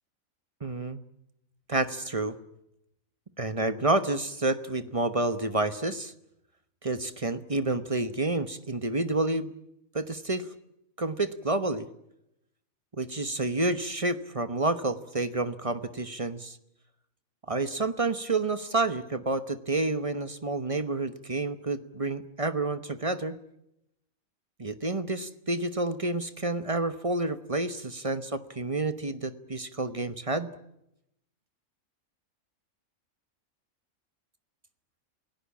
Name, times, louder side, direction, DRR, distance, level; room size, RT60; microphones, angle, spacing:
voice 1, 0.6-1.0 1.7-2.3 3.4-6.1 6.8-9.5 9.9-10.5 11.0-11.9 13.0-16.6 17.5-23.4 24.6-30.5, right 2 dB, 25° right, 11 dB, 1.0 m, -29 dB
28.5 x 17.5 x 8.6 m, 0.83 s
omnidirectional pair, 1.4 m